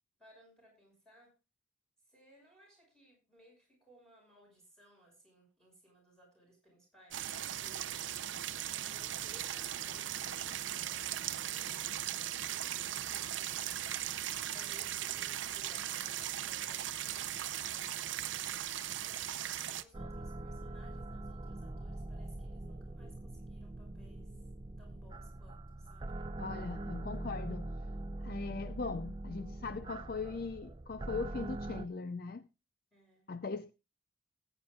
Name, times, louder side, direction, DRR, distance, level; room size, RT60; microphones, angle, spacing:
voice 1, 0.2-1.3 2.1-8.0 8.8-12.0 12.3-13.8 14.5-19.2 19.7-24.3 24.8-26.1 32.9-33.4, equal, 5° left, 5.8 m, -62 dB
sound 1, 7.1-19.8, right 11 dB, 70° right, 0.6 m, -38 dB
sound 2, 19.9-31.9, right 2 dB, 25° right, 0.5 m, -43 dB
voice 2, 26.4-27.7 28.2-32.5 33.3-33.7, left 4 dB, 50° left, 0.5 m, -40 dB
19.5 x 8.9 x 2.3 m
head